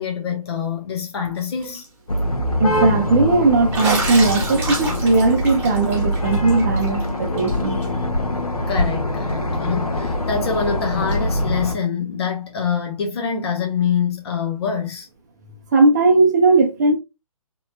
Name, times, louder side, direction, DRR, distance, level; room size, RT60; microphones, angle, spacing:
voice 1, 0.0-1.8 8.7-15.1, left 6 dB, 45° left, 0.8 m, -25 dB
Bathtub (filling or washing), 1.4-1.9 2.2-2.3 3.7-7.0 7.4-7.5 7.8-7.9 9.3-9.4 11.1-11.2, right 3 dB, 10° right, 1.2 m, -28 dB
sound 1, 2.1-11.8, left 1 dB, 75° left, 0.9 m, -23 dB
voice 2, 2.6-8.1 15.7-17.0, right 3 dB, 30° right, 0.5 m, -18 dB
4.0 x 3.0 x 2.5 m
figure-of-eight pair, 140°, 19 cm